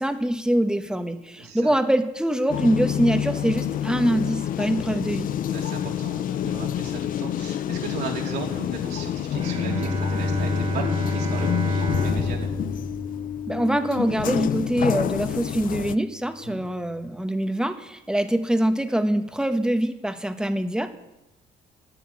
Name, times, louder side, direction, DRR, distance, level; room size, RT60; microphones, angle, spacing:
voice 1, 0.0-5.3 13.5-20.9, right 1 dB, 5° right, 8 dB, 1.1 m, -24 dB
voice 2, 1.4-1.7 5.5-12.6 16.4-16.6, right 5 dB, 75° right, 0 dB, 3.2 m, -36 dB
sound 1, 2.5-15.9, left 10 dB, 55° left, 0.6 m, -28 dB
Bowed string instrument, 9.4-14.7, left 1 dB, 35° right, 2.5 m, -29 dB
10.5 x 9.3 x 8.3 m, 0.96 s
cardioid pair, 110°, 17 cm